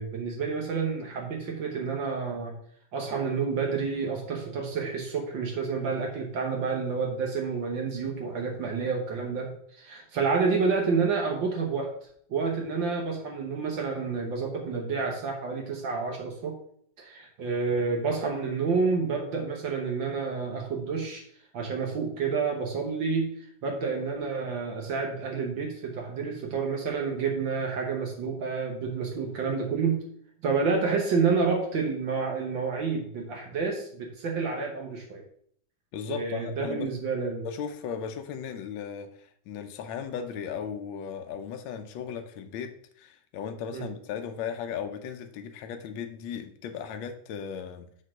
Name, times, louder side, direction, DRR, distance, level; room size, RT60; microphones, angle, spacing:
voice 1, 0.0-2.5 2.9-9.5 9.8-11.9 12.3-16.6 17.0-21.2 21.5-30.0 30.4-35.2 36.1-37.5 43.7-43.9, right 5 dB, 70° right, 1 dB, 1.8 m, -29 dB
voice 2, 35.9-36.9 37.4-47.9, left 7 dB, 75° left, 7 dB, 1.5 m, -36 dB
6.7 x 4.4 x 6.2 m, 0.63 s
omnidirectional pair, 2.2 m